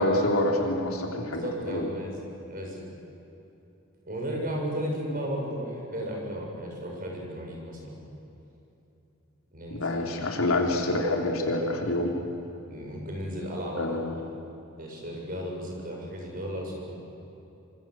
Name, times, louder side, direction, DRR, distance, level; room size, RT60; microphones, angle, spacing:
voice 1, 0.0-1.9 9.8-12.1 13.8-14.1, left 1 dB, 90° left, 1 dB, 3.7 m, -27 dB
voice 2, 1.3-2.9 4.0-8.0 9.5-10.0 12.7-14.0 14.8-17.0, equal, 45° right, 0 dB, 6.8 m, -34 dB
26.0 x 25.0 x 7.9 m, 2.8 s
head